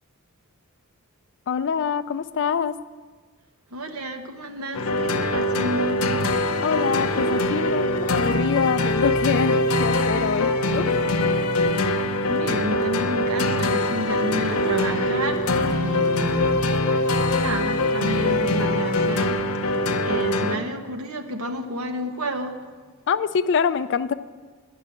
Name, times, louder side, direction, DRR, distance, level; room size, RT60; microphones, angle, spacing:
voice 1, 1.5-2.7 6.6-10.9 23.1-24.1, left 6 dB, 55° left, 13 dB, 0.4 m, -25 dB
voice 2, 3.7-6.0 11.5-11.6 12.3-16.6 17.4-22.6, right 1 dB, 90° right, 5 dB, 1.2 m, -31 dB
sound 1, 4.7-20.6, left 2 dB, 85° left, 0.8 m, -23 dB
10.5 x 6.1 x 8.7 m, 1.4 s
head